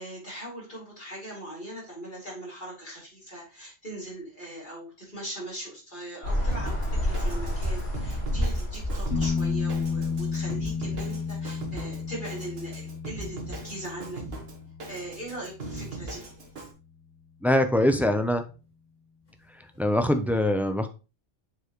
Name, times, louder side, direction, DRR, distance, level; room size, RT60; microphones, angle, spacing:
voice 1, 0.0-14.2 14.9-16.3, right 1 dB, 40° left, -6 dB, 4.0 m, -40 dB
sound 1, 6.2-10.6, equal, 55° left, 2.3 m, -29 dB
Drum kit, 6.5-16.7, right 2 dB, 55° right, 1.3 m, -40 dB
sound 2, 9.1-16.7 19.8-19.9, left 5 dB, 80° left, 2.5 m, -33 dB
voice 2, 17.4-18.5 19.8-20.9, left 1 dB, 5° right, 7 dB, 0.3 m, -23 dB
7.7 x 4.4 x 3.1 m, 0.30 s
omnidirectional pair, 1.3 m